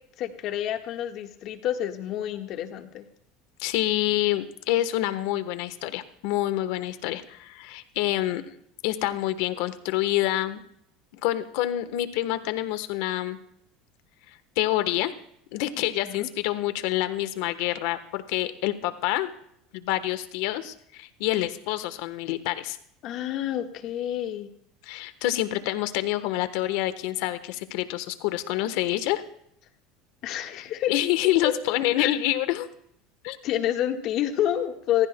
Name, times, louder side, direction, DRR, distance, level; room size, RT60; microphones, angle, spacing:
voice 1, 0.2-3.0 16.0-16.3 23.0-24.5 30.2-30.9 31.4-31.5 32.0-32.1 33.4-35.1, left 11 dB, 55° left, 5 dB, 1.5 m, -28 dB
voice 2, 3.6-8.4 8.8-10.6 11.2-13.4 14.6-15.1 15.5-19.3 19.7-22.8 24.9-29.2 30.9-32.7 33.2-33.4, left 14 dB, 75° left, 11 dB, 1.1 m, -27 dB
26.5 x 15.0 x 2.2 m, 0.71 s
supercardioid pair, 125°, 0 cm